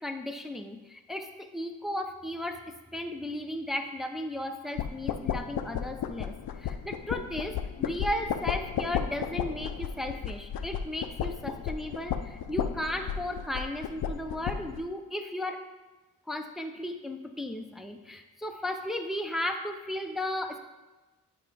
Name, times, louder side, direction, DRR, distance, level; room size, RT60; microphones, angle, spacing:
voice 1, 0.0-2.6 2.9-6.3 6.6-15.6 16.3-20.6, left 1 dB, ahead, 5 dB, 0.5 m, -35 dB
sound 1, 4.8-14.8, left 8 dB, 60° left, 0.5 m, -34 dB
7.3 x 4.9 x 3.4 m, 1.1 s
cardioid pair, 45°, 40 cm